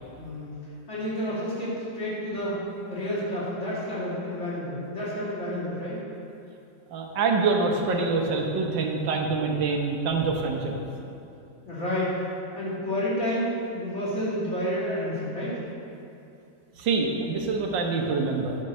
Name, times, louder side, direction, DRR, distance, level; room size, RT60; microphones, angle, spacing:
voice 1, 0.2-0.6 0.9-6.0 11.6-12.3 12.5-15.6, equal, 40° left, -9 dB, 3.1 m, -30 dB
voice 2, 6.9-10.7 16.8-18.6, right 4 dB, 90° right, 1 dB, 1.7 m, -25 dB
9.9 x 5.3 x 6.3 m, 2.6 s
omnidirectional pair, 2.0 m